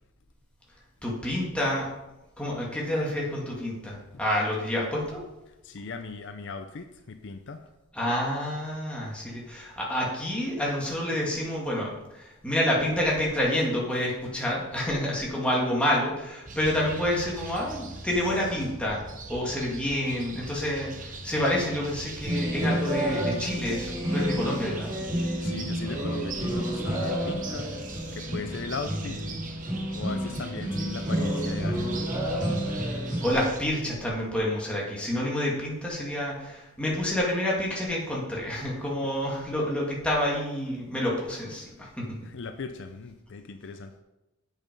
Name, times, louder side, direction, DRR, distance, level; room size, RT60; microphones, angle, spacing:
voice 1, 1.0-1.9 2.4-5.2 7.9-19.0 19.3-25.0 33.2-41.9, left 1 dB, 5° left, -4 dB, 2.2 m, -28 dB
voice 2, 5.6-7.6 25.1-27.7 28.1-29.2 29.9-32.0 41.8-41.9 42.2-43.9, left 4 dB, 55° left, 7 dB, 0.5 m, -38 dB
sound 1, 16.5-33.6, right 3 dB, 35° right, 1.1 m, -41 dB
sound 2, 22.2-33.3, equal, 15° right, 2.7 m, -30 dB
8.5 x 6.9 x 5.3 m, 0.97 s
head